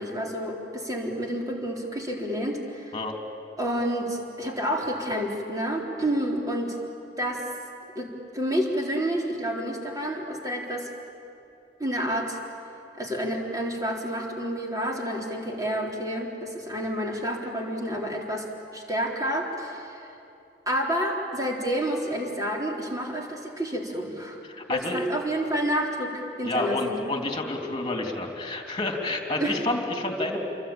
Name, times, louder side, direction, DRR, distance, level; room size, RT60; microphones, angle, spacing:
voice 1, 0.0-2.9 3.6-6.8 7.2-7.5 8.0-10.9 11.8-12.4 12.9-18.5 18.7-20.0 20.7-24.4 24.7-27.1 29.4-29.6 30.2-30.3, equal, 20° right, -1 dB, 3.8 m, -29 dB
voice 2, 24.4-25.0 26.4-30.4, left 2 dB, 25° left, 3 dB, 3.4 m, -29 dB
28.0 x 24.0 x 8.9 m, 2.7 s
head